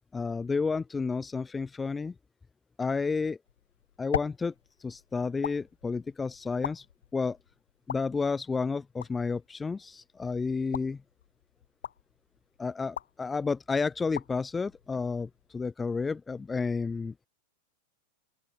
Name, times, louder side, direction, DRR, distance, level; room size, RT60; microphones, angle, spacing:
voice 1, 0.1-2.1 2.8-3.4 4.0-4.5 4.8-6.9 7.1-7.4 7.9-11.0 12.6-17.3, left 4 dB, 15° left, 5.6 m, -31 dB
sound 1, 3.4-15.6, left 9 dB, 65° left, 7.6 m, -42 dB
open air
figure-of-eight pair, 90°, 0 cm